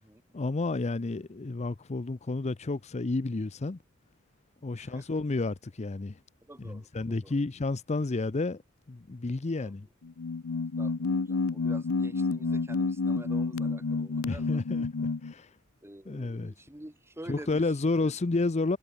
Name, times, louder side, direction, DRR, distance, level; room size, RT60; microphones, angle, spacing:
voice 1, 0.3-3.8 4.6-6.2 6.6-8.6 8.9-9.9 14.2-14.9 15.2-15.5 16.1-16.5 17.3-18.8, left 3 dB, 30° left, 0.6 m, -31 dB
voice 2, 4.8-5.1 6.4-7.3 9.6-9.7 10.8-14.6 15.8-18.1, right 1 dB, 10° right, 1.2 m, -48 dB
sound 1, 10.0-15.3, left 4 dB, 80° left, 0.7 m, -29 dB
head